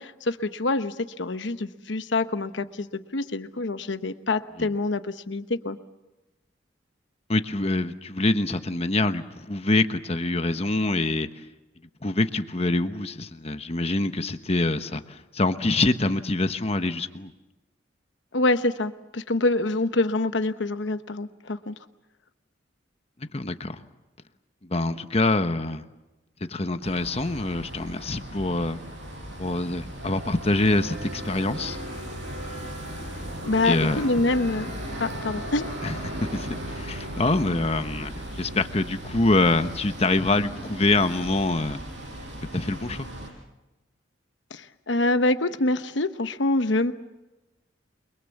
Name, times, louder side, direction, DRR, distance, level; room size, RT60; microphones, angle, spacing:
voice 1, 0.0-5.8 18.3-21.7 33.5-34.7 35.0-35.7 44.5-46.9, left 2 dB, 75° left, 10 dB, 1.0 m, -26 dB
voice 2, 7.3-11.3 12.0-17.3 23.2-23.8 24.6-25.8 26.5-28.8 29.4-31.8 33.6-34.1 35.8-41.8 42.5-43.1, left 2 dB, 35° left, 9 dB, 1.2 m, -25 dB
sound 1, 26.8-43.3, right 1 dB, 75° right, 6.4 m, -36 dB
29.5 x 23.0 x 7.3 m, 1.0 s
head